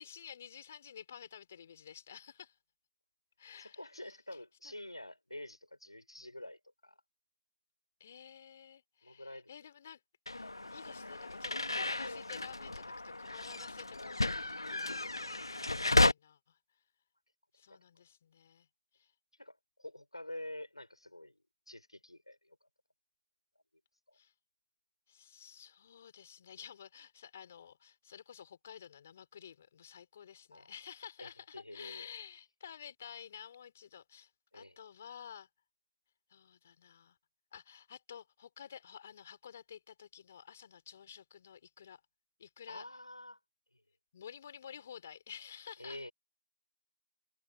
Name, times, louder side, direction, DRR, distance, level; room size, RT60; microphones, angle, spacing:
voice 1, 0.0-2.6 3.4-3.9 4.6-4.7 8.0-10.0 10.3-16.6 17.5-18.7 18.9-19.1 24.1-24.3 25.1-35.5 36.3-37.2 37.5-42.0 42.4-42.9 44.1-46.1, left 8 dB, 20° left, 4.7 m, -52 dB
voice 2, 3.6-7.0 9.0-9.5 17.7-17.8 19.4-21.4 21.7-22.7 24.1-24.2 30.5-30.7 31.2-32.1 34.5-34.8 42.7-43.4 45.8-46.1, left 1 dB, 75° left, 6.4 m, -48 dB
sound 1, 10.3-16.1, left 2 dB, 60° left, 2.0 m, -33 dB
figure-of-eight pair, 165°, 3 cm